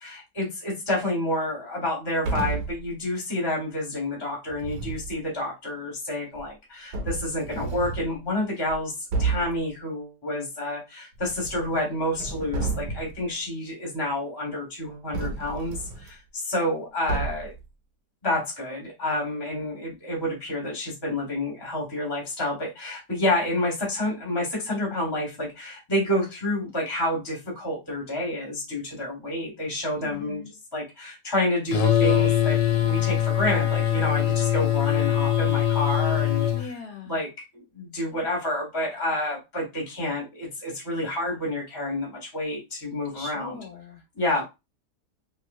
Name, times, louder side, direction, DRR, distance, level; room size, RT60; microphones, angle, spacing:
voice 1, 0.0-8.9 9.2-17.5 18.2-30.4 30.7-36.7 37.0-43.6 44.2-44.4, left 1 dB, 15° left, 1.3 m, -29 dB
sound 1, 2.2-2.9 4.5-5.1 6.4-6.5 6.9-8.1 8.7-8.8 9.1-9.6 11.2-11.8 12.1-13.2 15.1-16.1 17.1-17.6, right 4 dB, 75° right, 1.2 m, -31 dB
voice 2, 30.0-30.5 36.5-37.1 43.1-44.0, left 4 dB, 65° left, 1.6 m, -40 dB
sound 2, 31.7-36.6, left 10 dB, 90° left, 1.4 m, -22 dB
3.0 x 3.0 x 2.5 m
omnidirectional pair, 1.9 m